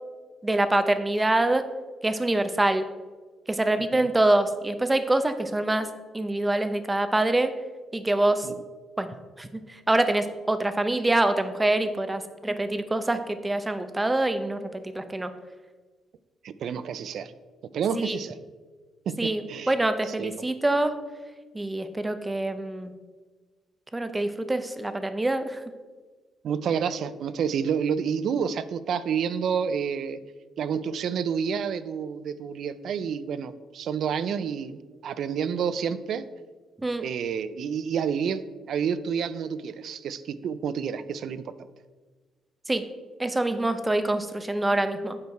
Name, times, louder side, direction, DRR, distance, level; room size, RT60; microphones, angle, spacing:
voice 1, 0.4-1.7 2.0-2.8 3.5-5.9 6.1-7.5 7.9-8.5 9.0-15.3 17.9-18.2 19.2-21.0 21.5-22.9 23.9-25.6 36.8-37.0 42.7-42.8 43.2-45.2, right 2 dB, 15° right, 9 dB, 0.7 m, -25 dB
voice 2, 16.4-17.3 17.7-18.4 19.1-19.7 20.2-20.5 26.4-30.2 30.6-36.3 37.0-41.5, right 7 dB, 65° right, 14 dB, 0.4 m, -29 dB
8.4 x 4.5 x 4.5 m, 1.4 s
cardioid pair, 90°, 0 cm